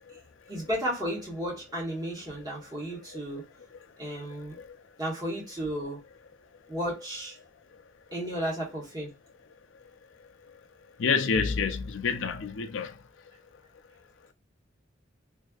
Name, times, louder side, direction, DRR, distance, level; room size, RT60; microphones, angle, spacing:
voice 1, 0.5-3.5 4.0-4.5 5.0-6.0 6.7-7.4 8.1-9.1, equal, 20° right, 1.4 m, -33 dB
voice 2, 11.0-12.9, left 5 dB, 70° left, 0.4 m, -27 dB
3.3 x 2.7 x 2.3 m
head